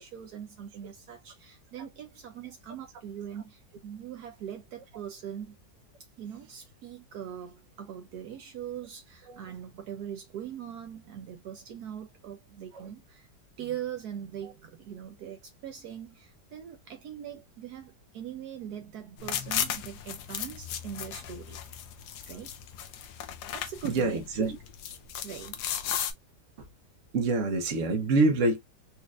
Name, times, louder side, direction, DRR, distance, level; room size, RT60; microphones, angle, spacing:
voice 1, 0.0-5.6 6.2-13.3 13.6-21.6 22.3-22.6 23.5-24.2 25.2-25.6, right 9 dB, 70° right, 1.2 m, -41 dB
sound 1, 19.2-26.1, left 9 dB, 75° left, 1.2 m, -36 dB
voice 2, 23.8-24.6 27.1-28.6, right 3 dB, 55° right, 1.1 m, -26 dB
4.2 x 2.5 x 2.3 m
omnidirectional pair, 1.8 m